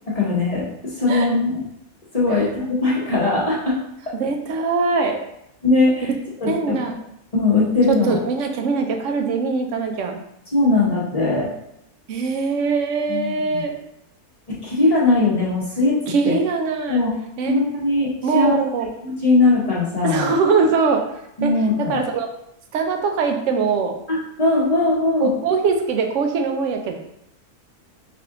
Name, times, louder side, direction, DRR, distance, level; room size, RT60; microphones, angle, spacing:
voice 1, 0.1-1.6 2.1-3.8 5.6-6.1 6.4-6.8 7.3-8.2 10.5-11.5 13.1-13.6 14.5-16.3 16.9-17.1 17.5-18.6 19.0-20.3 21.4-22.0 24.1-25.3, left 2 dB, 30° left, -6 dB, 0.9 m, -20 dB
voice 2, 4.1-5.2 6.5-7.0 8.1-10.2 12.1-13.7 16.1-17.0 17.4-17.6 18.2-18.9 20.0-21.0 21.4-21.5 21.9-22.3 22.7-23.9 25.2-27.0, right 4 dB, 65° right, 4 dB, 0.8 m, -22 dB
3.6 x 3.3 x 3.6 m, 0.79 s
omnidirectional pair, 1.6 m